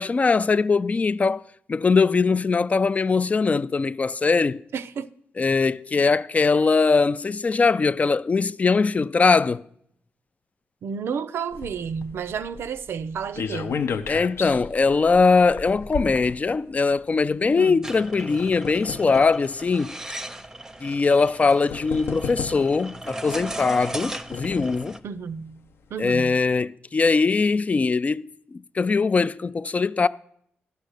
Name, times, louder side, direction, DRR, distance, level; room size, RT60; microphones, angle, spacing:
voice 1, 0.0-1.4 1.7-4.6 5.4-9.6 14.1-20.0 20.8-25.0 26.0-30.1, left 4 dB, 35° left, 0.4 m, -21 dB
voice 2, 4.7-5.1 5.9-6.1 10.8-13.8 17.6-17.9 25.0-25.6 25.9-26.4, right 6 dB, 75° right, 0.5 m, -31 dB
sound 1, 11.5-17.0 17.8-19.4 20.2-20.3 21.3-21.4 21.7-22.9 23.8-24.9 25.4-25.5 25.7-25.8, left 6 dB, 75° left, 0.7 m, -34 dB
sound 2, 17.8-25.0, right 1 dB, 10° right, 0.7 m, -37 dB
10.5 x 6.4 x 6.5 m
cardioid pair, 75°, 4 cm